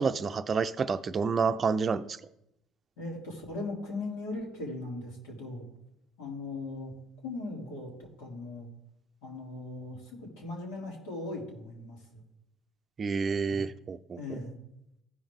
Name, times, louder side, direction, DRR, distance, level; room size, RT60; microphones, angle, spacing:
voice 1, 0.0-2.2 13.0-14.2, right 5 dB, 35° right, 12 dB, 0.5 m, -29 dB
voice 2, 3.0-5.6 6.2-6.9 7.2-8.7 9.2-12.2 13.4-13.7 14.1-14.6, left 2 dB, 90° left, -2 dB, 2.9 m, -39 dB
15.5 x 5.3 x 3.7 m, 0.83 s
supercardioid pair, 90°, 0 cm